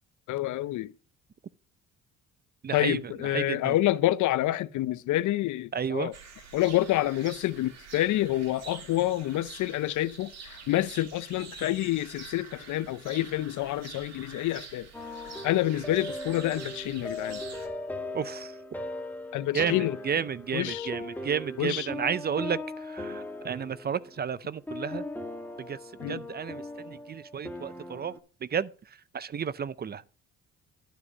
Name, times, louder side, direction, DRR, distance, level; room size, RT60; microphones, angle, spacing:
voice 1, 0.3-0.9 2.7-6.1 6.5-14.9 15.4-17.4 19.3-20.0 20.5-20.9 21.6-21.9 26.0-26.2, left 15 dB, 75° left, 0.6 m, -28 dB
voice 2, 2.6-3.8 5.7-6.1 18.1-18.6 19.5-25.0 25.6-25.8 26.1-28.1 28.4-28.7 29.1-30.0, right 7 dB, 35° right, 0.5 m, -32 dB
Scottish Village birds, 6.1-17.7, right 6 dB, 60° right, 2.3 m, -47 dB
sound 1, 14.9-28.2, left 2 dB, 5° left, 1.5 m, -39 dB
11.5 x 5.1 x 5.4 m
cardioid pair, 90°, 30 cm